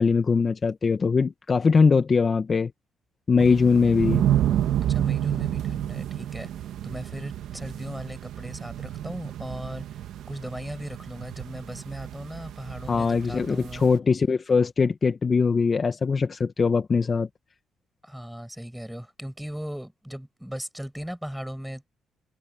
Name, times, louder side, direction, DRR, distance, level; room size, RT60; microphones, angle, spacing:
voice 1, 0.0-2.7 3.3-4.2 12.9-17.3, left 5 dB, 35° left, 1.3 m, -21 dB
sound 1, 3.4-14.0, right 11 dB, 80° right, 1.6 m, -30 dB
voice 2, 4.9-6.5 6.8-9.8 10.3-13.8 18.0-21.9, equal, ahead, 7.9 m, -37 dB
cardioid pair, 90°, 0 cm